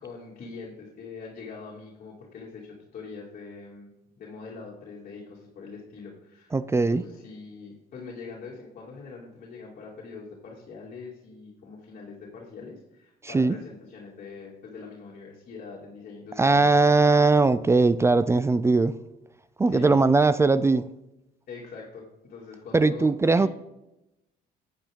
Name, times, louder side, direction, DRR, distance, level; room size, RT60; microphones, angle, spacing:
voice 1, 0.0-3.9 4.2-16.9 19.6-20.0 21.5-23.1 23.4-23.5, left 4 dB, 50° left, 2.7 m, -43 dB
voice 2, 6.5-7.0 13.2-13.6 16.4-19.0 19.6-20.9 22.7-23.5, right 3 dB, 15° right, 0.4 m, -20 dB
9.7 x 9.2 x 3.7 m
cardioid pair, 110°, 17 cm